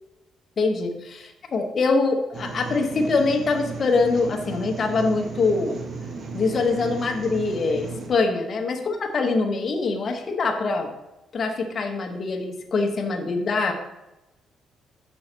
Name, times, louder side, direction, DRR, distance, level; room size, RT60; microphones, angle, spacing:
voice 1, 0.6-5.8 6.3-10.9 11.3-13.7, left 3 dB, 45° left, 2 dB, 1.0 m, -24 dB
sound 1, 2.3-8.1, right 4 dB, 50° right, 1.3 m, -35 dB
6.3 x 5.5 x 4.5 m, 0.97 s
cardioid pair, 90°, 0 cm